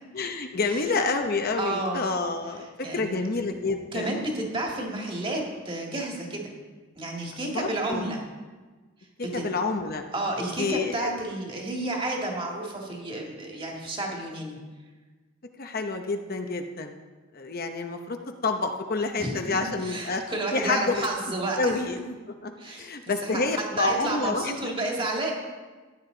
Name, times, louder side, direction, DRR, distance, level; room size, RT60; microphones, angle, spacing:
voice 1, 0.1-4.1 7.5-8.0 9.3-10.0 10.6-11.1 15.6-16.9 17.3-18.2 18.4-20.2 20.5-21.1 21.6-22.0 22.4-24.5, left 3 dB, 50° left, 5 dB, 0.9 m, -28 dB
voice 2, 1.6-2.1 2.6-3.1 3.9-6.5 7.0-8.2 9.3-9.4 10.1-14.6 19.2-19.4 19.8-21.7 22.6-22.9 23.2-23.4 23.8-25.3, right 2 dB, 25° right, -1 dB, 2.1 m, -31 dB
15.0 x 10.0 x 3.9 m, 1.3 s
head